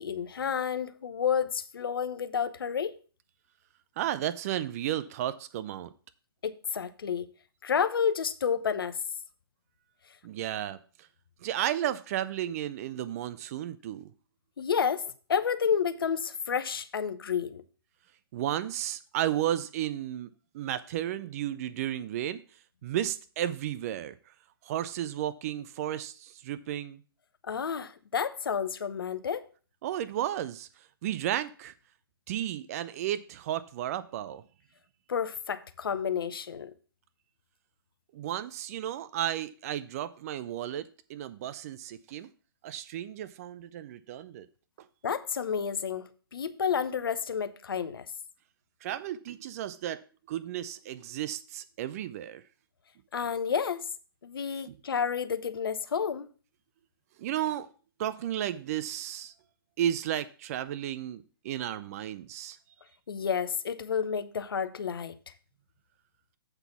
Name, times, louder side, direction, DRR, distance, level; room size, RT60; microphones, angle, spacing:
voice 1, 0.0-3.0 6.4-7.3 7.6-9.0 14.6-17.6 27.4-29.5 35.1-36.7 45.0-48.1 53.1-53.9 54.2-56.3 63.1-65.2, left 7 dB, 65° left, 0.8 m, -30 dB
voice 2, 4.0-5.9 10.2-11.1 11.4-14.1 18.3-22.4 22.8-24.3 24.6-27.0 29.8-30.7 31.0-31.7 32.3-34.4 38.1-42.3 42.6-44.5 48.8-50.0 50.3-52.4 54.5-54.8 57.2-57.7 58.0-59.3 59.8-62.6, right 11 dB, 40° right, 0.6 m, -33 dB
8.0 x 4.0 x 6.9 m
figure-of-eight pair, 125°, 13 cm